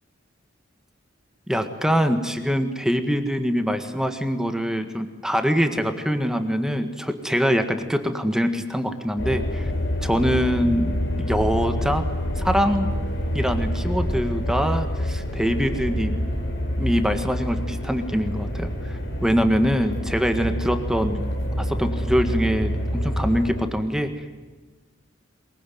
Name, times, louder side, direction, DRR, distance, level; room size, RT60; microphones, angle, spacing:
voice 1, 1.5-9.7 10.0-12.1 12.4-12.9 13.3-16.2 16.8-21.2 21.6-24.2, equal, 5° right, 7 dB, 1.7 m, -24 dB
sound 1, 9.2-23.6, equal, 75° left, 5.3 m, -27 dB
23.0 x 21.5 x 9.3 m, 1.3 s
head